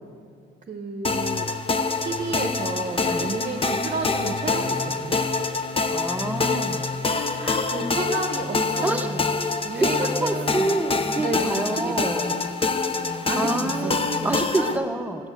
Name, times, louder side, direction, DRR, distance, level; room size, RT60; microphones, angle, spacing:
voice 1, 0.7-1.5 2.0-5.2 7.7-9.2 9.6-10.8 11.2-12.4 13.2-14.8, right 4 dB, 40° right, 5 dB, 0.9 m, -32 dB
sound 1, 1.0-14.8, left 4 dB, 30° left, 0.8 m, -26 dB
voice 2, 2.9-3.4 5.9-6.9 7.4-7.7 8.8-9.4 9.8-12.4 13.0-15.3, right 2 dB, 5° right, 5 dB, 0.9 m, -28 dB
14.0 x 7.1 x 8.0 m, 2.5 s
cardioid pair, 90°, 20 cm